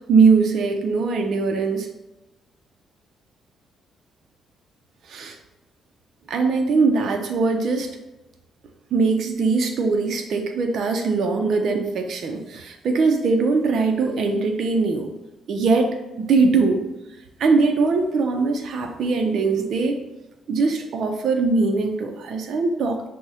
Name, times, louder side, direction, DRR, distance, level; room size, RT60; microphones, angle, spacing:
voice 1, 0.1-1.9 5.0-5.4 6.3-7.9 8.9-15.1 15.5-15.9 16.2-16.8 17.4-20.0 20.5-23.1, right 4 dB, 65° right, 4 dB, 0.4 m, -21 dB
6.0 x 2.1 x 2.7 m, 1.0 s
cardioid pair, 90°, 0 cm